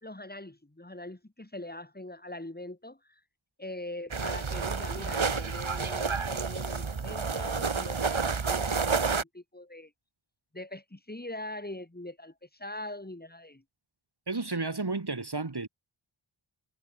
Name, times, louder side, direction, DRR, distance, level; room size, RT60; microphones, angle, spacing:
voice 1, 0.0-3.2 3.6-9.9 10.5-13.6, left 1 dB, 20° left, 2.7 m, -42 dB
sound 1, 4.1-9.2, right 5 dB, 70° right, 2.3 m, -30 dB
voice 2, 14.3-15.7, right 3 dB, 50° right, 3.2 m, -32 dB
wide cardioid pair, 60°, 49 cm